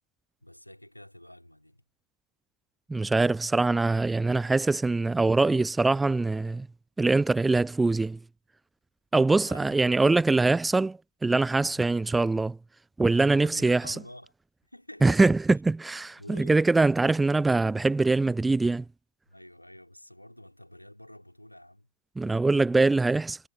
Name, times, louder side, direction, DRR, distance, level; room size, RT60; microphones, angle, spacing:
voice 1, 0.4-1.8 9.3-9.7 11.6-11.8 13.4-14.3 14.6-15.2 16.2-16.7 19.3-21.9, left 1 dB, 90° left, 3.5 m, -48 dB
voice 2, 2.9-6.7 7.0-8.2 9.1-12.6 13.0-13.9 15.0-18.8 22.2-23.4, right 3 dB, 10° right, 0.3 m, -23 dB
figure-of-eight pair, 90°, 0 cm